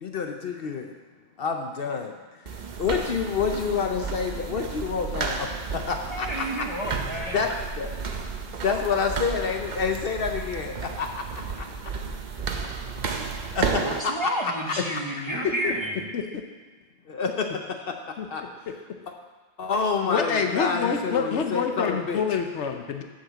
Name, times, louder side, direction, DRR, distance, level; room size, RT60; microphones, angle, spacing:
voice 1, 0.0-0.9 1.4-2.1 2.8-6.7 7.3-7.5 7.8-7.9 8.6-11.7 13.5-14.1 14.4-14.7 15.3-15.5 17.1-17.9 18.3-18.4 19.6-22.2, left 5 dB, 60° left, 4 dB, 0.8 m, -28 dB
sound 1, 2.5-14.0, right 5 dB, 45° right, 0.7 m, -32 dB
voice 2, 6.1-7.4 13.8-16.1, right 1 dB, 25° right, -1 dB, 1.1 m, -31 dB
voice 3, 18.2-18.5 20.0-23.0, left 6 dB, 75° left, 5 dB, 1.1 m, -27 dB
7.6 x 5.7 x 7.3 m, 1.3 s
omnidirectional pair, 1.2 m